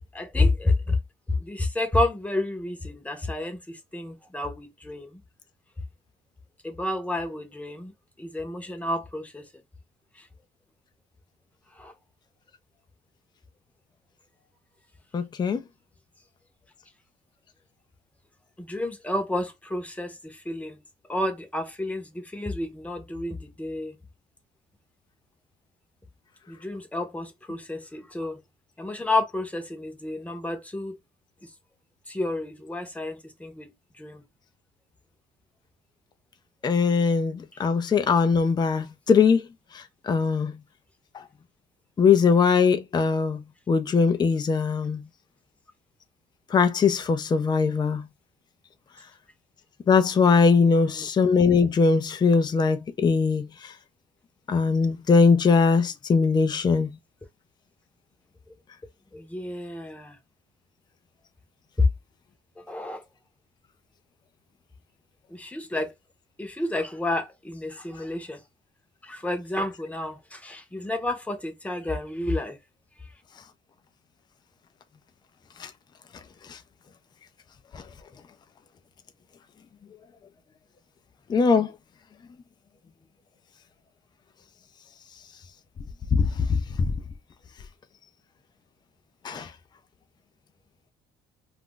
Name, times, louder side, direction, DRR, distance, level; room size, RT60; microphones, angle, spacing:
voice 1, 0.1-1.0 1.3-5.2 6.6-7.9 8.2-9.5 11.8-11.9 18.6-20.8 21.1-24.0 26.5-28.4 28.8-31.0 31.4-31.5 32.1-33.7 34.0-34.2 50.7-51.1 59.1-60.2 61.8-61.9 62.6-63.0 65.3-65.9 66.4-68.4 69.0-72.6, left 2 dB, 10° left, 0.8 m, -30 dB
voice 2, 15.1-15.6 36.6-39.5 39.7-40.5 42.0-45.0 46.5-48.1 49.9-53.7 54.5-56.9 75.6-75.7 76.5-76.6 77.7-77.8 81.3-81.7 86.1-86.9 89.2-89.5, left 5 dB, 25° left, 0.4 m, -21 dB
2.5 x 2.2 x 3.6 m
cardioid pair, 110°, 17 cm